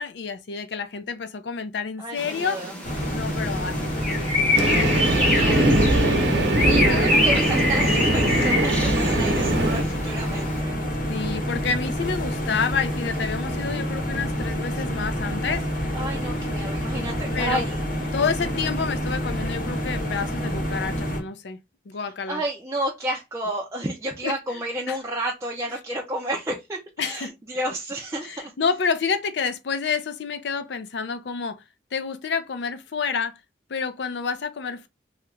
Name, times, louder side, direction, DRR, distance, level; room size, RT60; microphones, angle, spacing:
voice 1, 0.0-2.7 3.1-4.6 6.7-7.4 9.3-9.4 11.1-15.7 17.3-17.7 18.1-21.6 21.9-22.4 24.2-24.6 24.9-25.0 27.0-27.3 28.2-31.6 31.9-33.4 33.7-34.9, left 5 dB, 75° left, 0.4 m, -29 dB
voice 2, 2.0-2.7 5.1-10.8 15.9-17.8 22.3-28.5, right 1 dB, 15° right, 0.4 m, -31 dB
sound 1, 2.2-10.6, left 2 dB, 5° left, 0.8 m, -26 dB
sound 2, 2.8-21.2, equal, 50° left, 0.9 m, -28 dB
Train, 4.5-9.8, right 1 dB, 90° right, 0.9 m, -21 dB
2.8 x 2.4 x 3.2 m
head